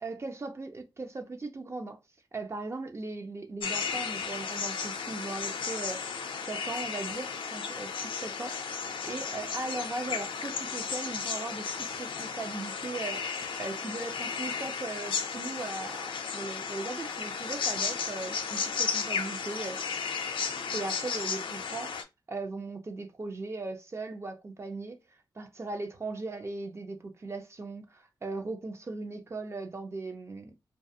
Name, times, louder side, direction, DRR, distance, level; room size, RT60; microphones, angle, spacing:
voice 1, 0.0-2.0 2.3-6.0 6.4-19.8 20.7-22.0 22.3-25.0 25.4-30.6, right 3 dB, 30° right, 0.5 m, -38 dB
sound 1, 3.6-22.0, left 6 dB, 75° left, 0.4 m, -34 dB
2.3 x 2.3 x 2.7 m
wide cardioid pair, 95°, 9 cm